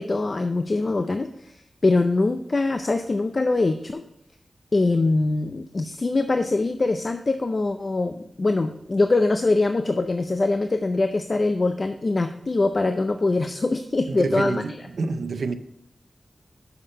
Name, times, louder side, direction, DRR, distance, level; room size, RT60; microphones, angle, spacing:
voice 1, 0.0-1.5 1.8-4.0 4.7-14.6, left 2 dB, 45° left, 0.4 m, -23 dB
voice 2, 14.1-15.5, right 4 dB, 85° right, 0.5 m, -28 dB
6.5 x 5.8 x 5.4 m
wide cardioid pair, 90°, 0 cm